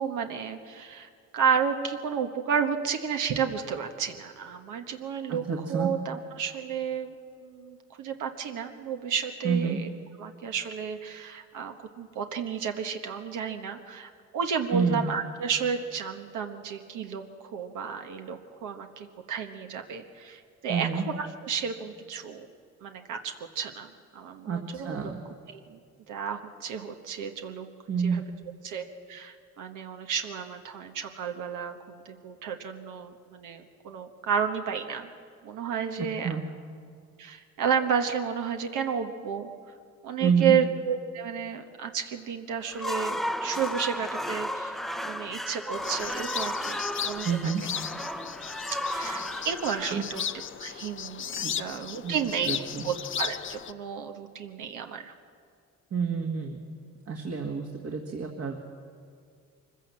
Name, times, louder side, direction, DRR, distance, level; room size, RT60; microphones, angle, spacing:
voice 1, 0.0-5.4 5.7-7.1 7.4-9.9 10.2-22.5 22.8-24.9 25.5-25.8 26.1-27.7 28.0-28.2 28.6-35.1 35.4-36.3 37.2-39.5 40.0-47.5 48.9-50.3 50.6-52.5 52.8-55.1, right 7 dB, 85° right, 5 dB, 1.3 m, -32 dB
voice 2, 5.3-5.9 9.4-9.8 14.7-15.1 20.7-21.1 24.5-25.2 27.9-28.2 36.0-36.4 40.2-40.5 47.2-47.6 49.9-50.0 51.4-51.5 52.0-52.2 52.4-52.9 55.9-56.6 57.1-58.5, right 6 dB, 55° right, 1 dB, 1.9 m, -28 dB
sound 1, 42.6-50.8, equal, ahead, 0.5 m, -34 dB
sound 2, 45.8-53.7, left 8 dB, 40° left, 0.6 m, -36 dB
23.5 x 15.5 x 7.5 m, 2.2 s
cardioid pair, 90°, 30 cm